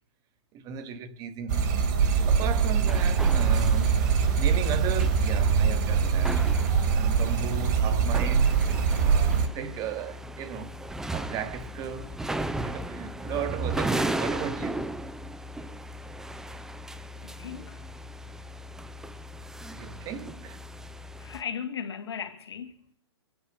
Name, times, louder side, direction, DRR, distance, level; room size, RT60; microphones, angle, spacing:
voice 1, 0.5-1.8 2.3-8.6 9.0-10.8 11.1-12.2 12.6-14.9 19.7-20.6, right 7 dB, 25° right, 1.3 m, -36 dB
sound 1, 1.5-9.5, right 6 dB, 45° right, 1.9 m, -23 dB
sound 2, 2.0-21.4, right 1 dB, 5° right, 0.5 m, -36 dB
voice 2, 17.4-17.9 21.2-22.8, left 7 dB, 70° left, 2.1 m, -36 dB
24.0 x 9.4 x 5.2 m
hypercardioid pair, 130°, 14 cm